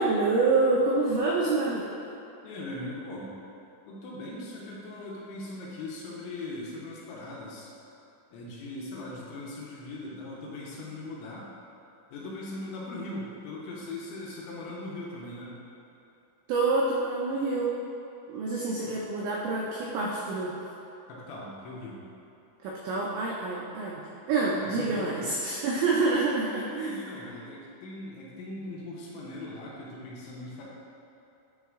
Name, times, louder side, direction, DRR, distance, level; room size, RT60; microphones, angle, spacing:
voice 1, 0.0-1.9 16.5-17.7 18.3-20.6 22.6-27.2, right 3 dB, 85° right, -4 dB, 2.5 m, -27 dB
voice 2, 2.4-3.3 3.9-7.7 8.3-11.5 12.1-15.6 18.8-18.9 21.1-22.0 24.8-25.3 26.9-30.6, left 2 dB, 80° left, -4 dB, 3.0 m, -40 dB
9.4 x 3.3 x 3.6 m, 2.9 s
omnidirectional pair, 5.7 m